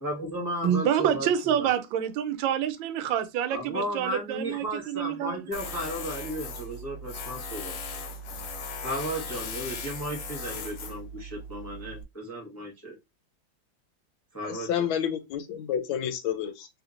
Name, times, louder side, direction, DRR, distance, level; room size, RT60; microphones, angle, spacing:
voice 1, 0.0-1.7 3.5-8.0 8.8-12.9 14.3-14.9, equal, 15° left, 0.5 m, -35 dB
voice 2, 0.6-5.4, right 9 dB, 85° right, 1.3 m, -27 dB
Tools, 5.5-12.0, left 3 dB, 70° left, 0.9 m, -38 dB
voice 3, 14.4-16.7, left 9 dB, 85° left, 1.4 m, -30 dB
3.6 x 2.8 x 2.4 m
omnidirectional pair, 2.1 m